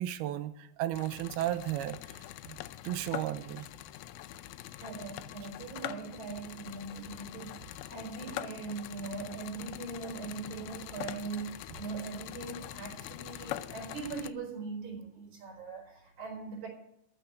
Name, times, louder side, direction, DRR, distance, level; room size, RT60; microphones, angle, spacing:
voice 1, 0.0-2.2 2.5-2.6 2.8-3.7 11.7-11.8, right 13 dB, 85° right, 2.6 m, -34 dB
sound 1, 0.9-14.3, left 14 dB, 80° left, 2.4 m, -44 dB
voice 2, 4.8-16.7, right 4 dB, 65° right, 5.8 m, -41 dB
13.5 x 6.7 x 9.2 m
omnidirectional pair, 4.5 m